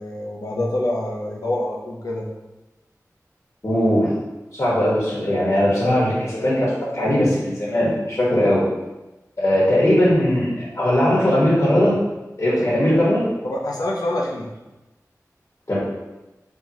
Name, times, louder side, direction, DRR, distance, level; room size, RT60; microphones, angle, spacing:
voice 1, 0.0-2.2 13.4-14.5, left 1 dB, 90° left, -2 dB, 0.8 m, -26 dB
voice 2, 3.6-4.1 4.5-8.6 9.4-12.0 12.4-13.3 15.7-15.8, left 1 dB, 50° left, -7 dB, 1.3 m, -19 dB
4.6 x 3.4 x 2.9 m, 1.1 s
wide cardioid pair, 50°, 6 cm